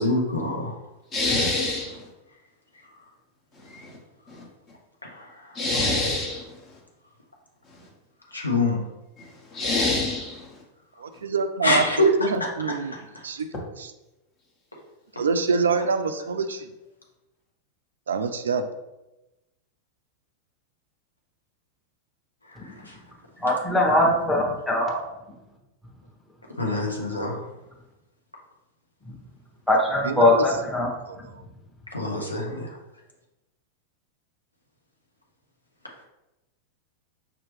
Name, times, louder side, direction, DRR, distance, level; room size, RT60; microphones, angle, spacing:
voice 1, 0.0-0.7 5.0-5.6 8.3-8.8 11.6-12.1 12.4-12.7 22.5-23.0 26.6-27.4 31.9-32.8, left 1 dB, 80° left, -1 dB, 0.8 m, -25 dB
voice 2, 1.1-2.1 3.5-4.0 4.3-4.4 5.5-6.6 9.2-10.6, left 2 dB, 30° left, -2 dB, 1.3 m, -27 dB
voice 3, 11.0-11.8 12.2-12.9 13.2-13.5 13.8-13.9 15.2-16.7 18.1-18.6 30.0-30.5 31.1-31.4, right 5 dB, 70° right, 9 dB, 0.3 m, -26 dB
voice 4, 23.4-25.0 29.7-30.9, left 1 dB, 5° left, -1 dB, 1.0 m, -21 dB
5.5 x 2.9 x 3.2 m, 0.97 s
figure-of-eight pair, 90°, 0 cm